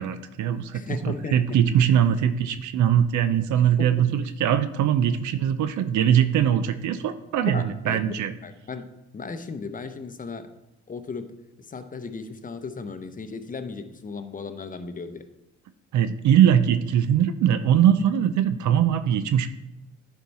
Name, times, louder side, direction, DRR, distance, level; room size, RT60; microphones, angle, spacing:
voice 1, 0.0-8.3 15.9-19.5, right 9 dB, 75° right, 11 dB, 0.6 m, -21 dB
voice 2, 0.7-1.4 3.6-3.9 7.5-8.0 8.4-10.5 10.9-11.3 11.7-15.3, left 4 dB, 25° left, 8 dB, 0.8 m, -36 dB
10.5 x 4.5 x 4.2 m, 0.97 s
cardioid pair, 90°, 30 cm